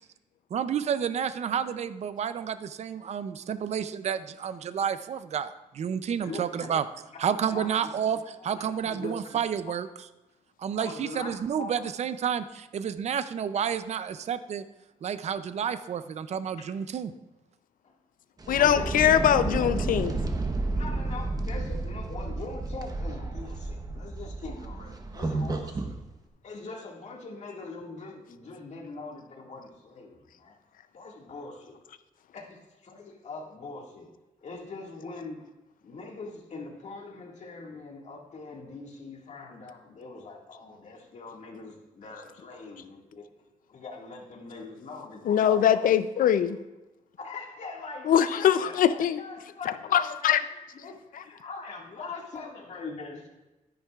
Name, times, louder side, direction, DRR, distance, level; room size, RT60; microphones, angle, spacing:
voice 1, 0.5-6.8 7.2-9.9 10.6-14.6 15.0-17.1, right 8 dB, 50° right, 12 dB, 0.5 m, -30 dB
voice 2, 6.2-6.7 7.1-8.0 8.3-9.7 10.8-11.3 11.6-11.8 16.6-16.7 17.8-17.9 18.6-19.2 19.6-20.1 20.7-25.9 26.4-30.5 30.9-31.8 32.3-34.1 34.4-35.5 35.8-43.3 43.7-45.9 47.2-50.3 50.7-53.3, left 3 dB, 55° left, 0 dB, 1.9 m, -42 dB
sound 1, 18.4-26.0, right 2 dB, 25° right, 0.9 m, -32 dB
voice 3, 18.5-20.1 45.3-46.6 48.1-49.2 49.9-50.4, left 9 dB, 80° left, 12 dB, 0.5 m, -22 dB
12.5 x 10.0 x 2.4 m, 1.0 s
wide cardioid pair, 135°, 14 cm